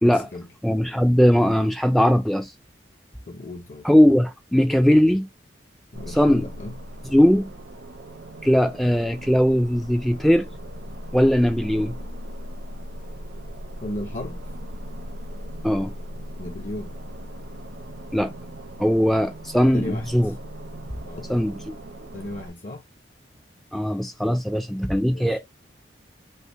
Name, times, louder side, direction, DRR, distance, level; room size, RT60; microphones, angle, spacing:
voice 1, 0.0-0.5 3.3-3.9 5.9-6.8 13.8-14.4 16.4-16.9 19.7-20.3 21.0-21.3 22.1-22.8 25.1-25.4, left 1 dB, 45° left, 0.7 m, -35 dB
voice 2, 0.6-2.5 3.8-5.3 6.1-6.5 7.0-7.5 8.4-10.5 11.1-12.0 15.6-15.9 18.1-18.3 18.8-20.3 21.3-21.7 23.7-25.4, equal, ahead, 0.3 m, -19 dB
sound 1, 5.9-22.5, equal, 70° right, 0.7 m, -38 dB
5.5 x 2.1 x 4.4 m
head